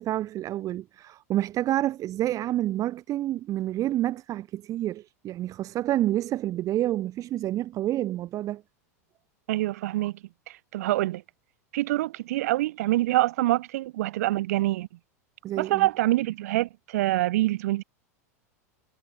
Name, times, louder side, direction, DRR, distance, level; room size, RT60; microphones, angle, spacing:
voice 1, 0.0-8.6 15.4-15.9, right 13 dB, 40° right, 1.9 m, -28 dB
voice 2, 9.5-10.1 10.7-11.2 11.7-14.9 15.6-17.8, right 16 dB, 65° right, 0.8 m, -25 dB
hypercardioid pair, 90°, 9 cm